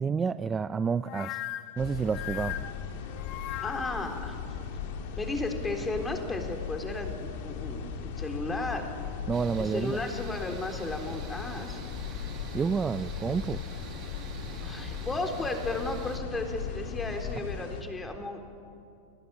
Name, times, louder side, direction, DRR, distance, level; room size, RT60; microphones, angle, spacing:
voice 1, 0.0-1.4 1.8-2.6 9.3-10.0 12.5-13.6, right 5 dB, 20° right, 13 dB, 0.5 m, -29 dB
sound 1, 1.0-4.1, left 15 dB, 50° left, 1.6 m, -38 dB
sound 2, 1.8-17.8, left 6 dB, 65° left, 3.3 m, -38 dB
voice 2, 3.6-4.4 5.1-8.9 9.6-11.8 14.6-18.4, left 2 dB, 15° left, 4 dB, 3.7 m, -34 dB
sound 3, 9.3-16.2, right 8 dB, 40° right, 2.2 m, -48 dB
29.5 x 19.0 x 8.9 m, 2.5 s
hypercardioid pair, 125°, 0 cm